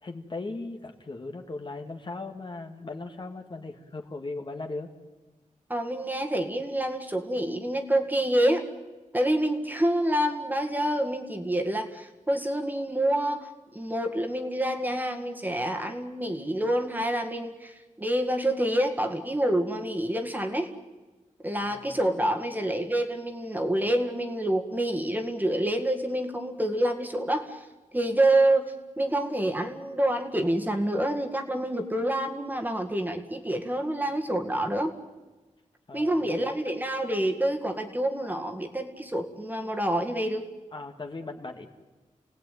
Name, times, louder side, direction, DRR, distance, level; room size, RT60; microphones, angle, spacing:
voice 1, 0.0-4.9 21.6-21.9 35.9-36.2 40.7-41.7, left 3 dB, 35° left, 4 dB, 1.9 m, -38 dB
voice 2, 5.7-8.6 9.1-20.7 21.4-27.6 27.9-34.9 35.9-40.4, right 1 dB, 15° right, 4 dB, 2.0 m, -27 dB
29.0 x 18.5 x 9.4 m, 1.2 s
wide cardioid pair, 140°, 13 cm